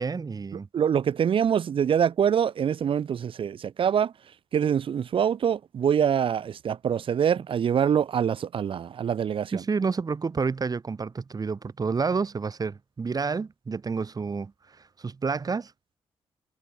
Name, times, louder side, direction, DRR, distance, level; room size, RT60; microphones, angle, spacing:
voice 1, 0.0-0.7 9.5-15.7, right 5 dB, 40° right, 6.2 m, -29 dB
voice 2, 0.7-4.1 4.5-9.6, right 8 dB, 65° right, 1.6 m, -25 dB
cardioid pair, 90°, 10 cm